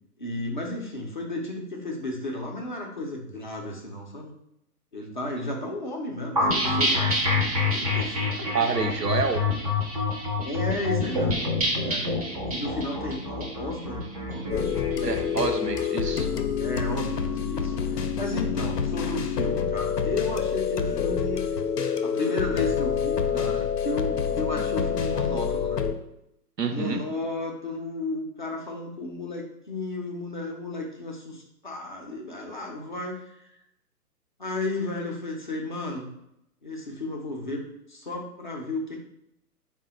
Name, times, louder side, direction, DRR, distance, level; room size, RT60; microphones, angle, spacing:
voice 1, 0.2-4.3 4.9-7.1 7.7-9.1 10.4-11.4 11.8-12.1 12.5-15.3 16.6-21.5 22.0-25.8 26.7-33.5 34.4-36.1 36.6-39.0, left 2 dB, 35° left, -1 dB, 0.4 m, -33 dB
sound 1, 6.4-15.8, left 2 dB, 25° right, 0.4 m, -27 dB
voice 2, 8.5-9.5 15.0-16.3 26.6-27.0, right 5 dB, 85° right, 5 dB, 0.7 m, -27 dB
sound 2, 14.5-25.9, left 7 dB, 85° left, 0.5 m, -27 dB
3.8 x 2.1 x 3.8 m, 0.80 s
figure-of-eight pair, 120°, 47 cm